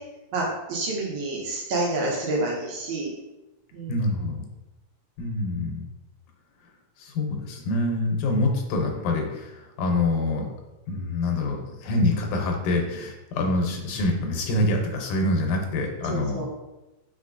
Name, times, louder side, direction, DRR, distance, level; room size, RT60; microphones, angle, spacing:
voice 1, 0.3-3.1 3.7-3.9 16.0-16.5, right 2 dB, 75° right, -2 dB, 2.3 m, -28 dB
voice 2, 3.9-4.4 5.2-5.9 7.0-10.5 10.9-16.4, left 2 dB, 90° left, 2 dB, 2.3 m, -26 dB
4.8 x 4.1 x 2.5 m, 1.0 s
omnidirectional pair, 3.4 m